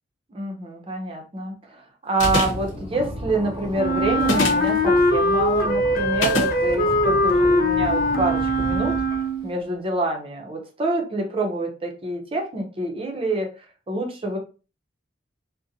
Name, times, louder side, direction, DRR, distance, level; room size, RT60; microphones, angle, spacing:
voice 1, 0.3-8.9 9.4-13.5 13.9-14.4, right 2 dB, 30° right, 2 dB, 0.6 m, -27 dB
sound 1, 2.2-2.7 4.2-4.7 6.2-6.5, left 2 dB, 85° left, 0.9 m, -23 dB
sound 2, 2.2-9.4, equal, 15° right, 0.9 m, -34 dB
Wind instrument woodwind instrument, 3.8-9.5, left 1 dB, 50° left, 0.4 m, -21 dB
2.5 x 2.1 x 2.7 m, 0.34 s
head